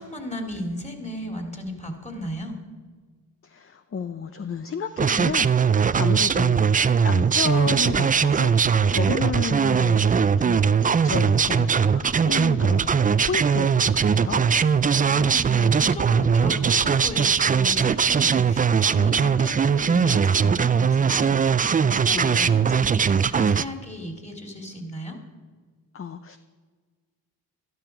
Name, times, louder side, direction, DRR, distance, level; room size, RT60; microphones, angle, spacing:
voice 1, 0.0-2.6 15.0-25.2, left 1 dB, 15° left, 3 dB, 2.7 m, -36 dB
voice 2, 3.4-6.7 7.0-8.5 8.9-14.5 18.2-18.3 22.1-22.6 25.9-26.4, left 6 dB, 35° left, 9 dB, 0.6 m, -32 dB
sound 1, 5.0-23.6, right 6 dB, 25° right, 0.3 m, -20 dB
sound 2, 8.7-20.5, right 3 dB, 45° right, 1.6 m, -42 dB
12.0 x 12.0 x 5.9 m, 1.5 s
cardioid pair, 55°, 40 cm